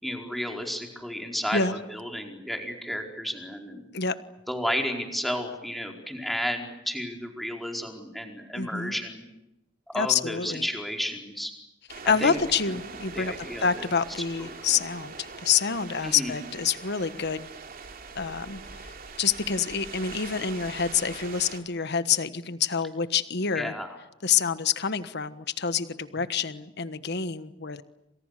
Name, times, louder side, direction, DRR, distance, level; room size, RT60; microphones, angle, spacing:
voice 1, 0.0-1.6 1.9-3.8 4.5-9.2 9.9-11.5 12.0-12.4 13.1-13.9 16.0-16.3 23.5-24.0, equal, ahead, 2 dB, 4.6 m, -32 dB
voice 2, 8.5-8.9 10.0-10.7 12.0-17.5 18.1-23.7 24.2-27.8, left 6 dB, 60° left, 12 dB, 1.4 m, -27 dB
sound 1, 11.9-21.6, right 4 dB, 50° right, 3.2 m, -42 dB
29.5 x 26.5 x 6.7 m, 0.92 s
head